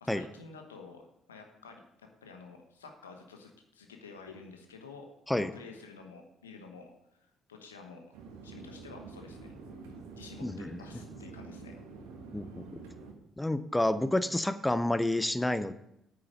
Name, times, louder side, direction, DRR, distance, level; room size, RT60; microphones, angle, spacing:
voice 1, 0.0-1.8 2.2-5.1 5.3-8.0 8.4-9.5 10.2-11.7, left 4 dB, 85° left, 4 dB, 1.0 m, -50 dB
sound 1, 8.1-13.1, right 4 dB, 75° right, 1.5 m, -47 dB
voice 2, 12.3-12.7 13.4-15.7, left 1 dB, 10° left, 13 dB, 0.6 m, -29 dB
8.9 x 6.8 x 6.5 m, 0.80 s
figure-of-eight pair, 45°, 0 cm